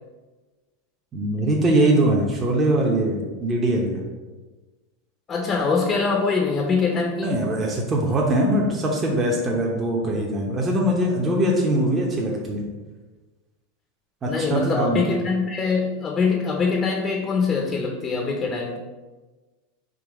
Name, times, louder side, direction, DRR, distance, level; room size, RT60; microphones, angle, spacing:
voice 1, 1.1-4.0 7.2-12.7 14.2-15.0, right 1 dB, 25° right, -2 dB, 0.8 m, -22 dB
voice 2, 5.3-7.4 14.2-18.8, left 4 dB, 30° left, 1 dB, 0.7 m, -23 dB
3.9 x 2.9 x 4.6 m, 1.3 s
hypercardioid pair, 100°, 0 cm